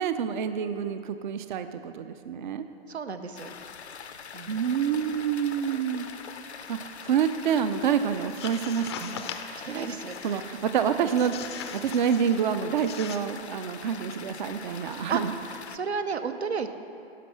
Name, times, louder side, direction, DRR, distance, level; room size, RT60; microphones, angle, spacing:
voice 1, 0.0-2.7 4.5-6.1 6.4-9.3 10.2-15.3, right 8 dB, 50° right, 10 dB, 0.5 m, -28 dB
voice 2, 2.9-3.5 4.3-4.5 9.5-10.5 15.1-15.2 15.5-16.7, right 5 dB, 85° right, 9 dB, 0.7 m, -33 dB
sound 1, 3.3-15.8, left 6 dB, 85° left, 0.6 m, -43 dB
sound 2, 8.2-9.6 10.0-10.4 11.2-12.4 12.8-13.2, left 8 dB, 25° left, 0.4 m, -40 dB
12.0 x 5.5 x 6.0 m, 2.8 s
figure-of-eight pair, 125°, 32 cm